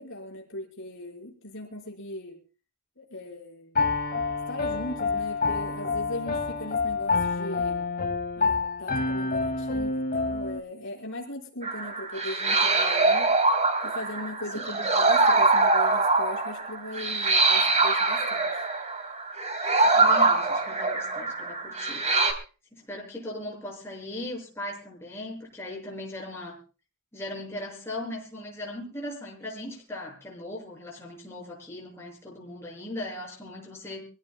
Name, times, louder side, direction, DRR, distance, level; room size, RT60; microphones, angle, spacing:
voice 1, 0.0-2.4 3.0-3.8 4.5-7.9 8.4-13.3 13.8-18.6, left 1 dB, 60° left, -1 dB, 5.1 m, -39 dB
Piano, 3.7-10.6, left 4 dB, 45° left, 2.3 m, -28 dB
sound 1, 11.6-22.3, right 3 dB, 30° right, 3.4 m, -23 dB
voice 2, 14.6-15.0 19.7-22.1 22.7-26.6 27.1-34.0, left 1 dB, 10° left, -2 dB, 6.8 m, -38 dB
25.5 x 16.5 x 2.3 m, 0.35 s
head